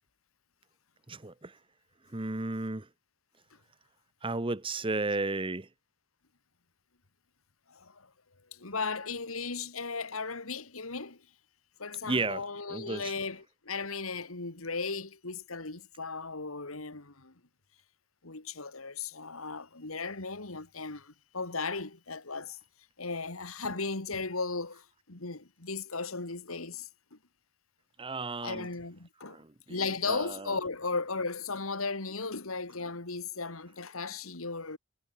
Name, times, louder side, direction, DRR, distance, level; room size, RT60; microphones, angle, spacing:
voice 1, 1.1-1.6 2.1-2.9 4.2-5.7 12.0-13.1 28.0-28.7 29.3-30.5, right 3 dB, 25° right, 1.1 m, -34 dB
voice 2, 7.7-8.1 8.5-11.2 11.8-17.3 18.2-22.6 23.0-27.2 28.4-29.4 29.7-34.8, left 4 dB, 85° left, 2.6 m, -36 dB
head